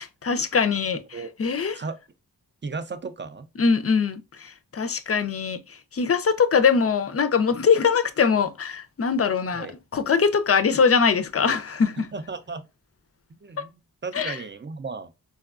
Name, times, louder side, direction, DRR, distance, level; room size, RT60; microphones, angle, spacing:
voice 1, 0.0-1.0 1.4-1.7 3.6-9.7 9.9-12.1 14.1-14.4, left 5 dB, 40° left, 0.5 m, -22 dB
voice 2, 2.6-3.5 9.5-9.7 12.1-12.7 13.3-13.7 14.0-15.1, right 4 dB, 30° right, 0.5 m, -35 dB
4.4 x 2.2 x 2.3 m
wide cardioid pair, 60°, 38 cm